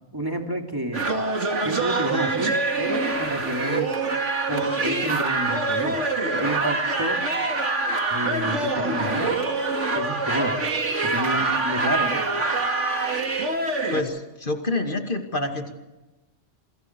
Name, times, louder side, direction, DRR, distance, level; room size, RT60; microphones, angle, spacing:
voice 1, 0.1-1.0 1.6-3.9 4.5-6.0 6.4-7.2 8.1-9.4 9.9-10.6 11.0-12.2, right 1 dB, 20° right, 2 dB, 3.0 m, -29 dB
sound 1, 0.9-14.0, right 3 dB, 90° right, 2.7 m, -25 dB
voice 2, 13.9-15.7, left 2 dB, 45° left, 4 dB, 2.6 m, -28 dB
27.0 x 23.5 x 4.8 m, 1.1 s
omnidirectional pair, 1.2 m